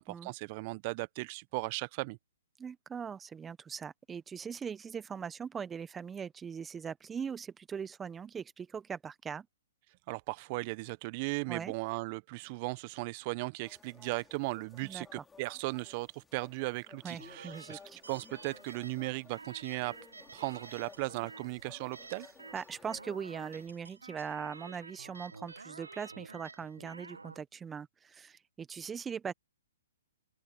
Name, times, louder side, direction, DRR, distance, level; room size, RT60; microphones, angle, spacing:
voice 1, 0.0-2.2 10.1-17.8 18.1-20.0 20.3-22.3, right 25 dB, 40° right, 1.2 m, -37 dB
voice 2, 2.6-9.5 11.5-11.7 14.8-15.2 17.0-18.0 22.5-29.3, right 6 dB, 15° right, 1.3 m, -41 dB
sound 1, 13.6-23.7, left 5 dB, 10° left, 4.2 m, -57 dB
sound 2, 17.1-27.4, right 4 dB, 85° right, 1.0 m, -51 dB
open air
figure-of-eight pair, 125°, 0 cm